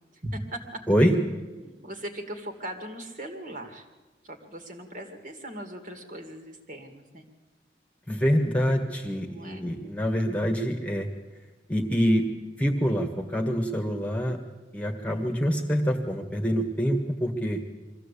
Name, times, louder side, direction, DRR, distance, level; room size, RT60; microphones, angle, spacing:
voice 1, 0.1-0.6 1.0-1.1 1.6-3.9 4.2-7.3 9.3-9.6, right 1 dB, 45° right, 5 dB, 2.4 m, -39 dB
voice 2, 0.9-1.2 8.1-11.1 11.7-12.3 12.6-14.4 14.7-17.6, equal, 5° left, 4 dB, 1.7 m, -25 dB
23.5 x 15.0 x 8.5 m, 1.1 s
head